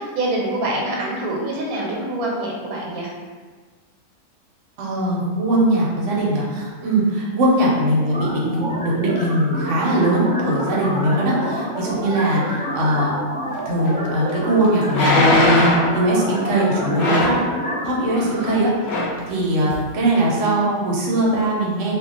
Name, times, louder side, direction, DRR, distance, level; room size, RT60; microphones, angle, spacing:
voice 1, 0.0-3.1 18.2-18.5 19.6-19.8, right 1 dB, 85° right, -3 dB, 1.1 m, -26 dB
voice 2, 4.8-17.4 17.8-21.9, right 1 dB, 65° right, -5 dB, 1.0 m, -21 dB
sound 1, 8.1-18.1, equal, 10° left, 0.4 m, -29 dB
sound 2, 13.9-14.0 14.9-15.9 17.0-17.4 18.4-18.6 18.8-19.2 19.7-19.8, left 1 dB, 65° left, 0.7 m, -18 dB
2.3 x 2.2 x 3.8 m, 1.5 s
omnidirectional pair, 1.5 m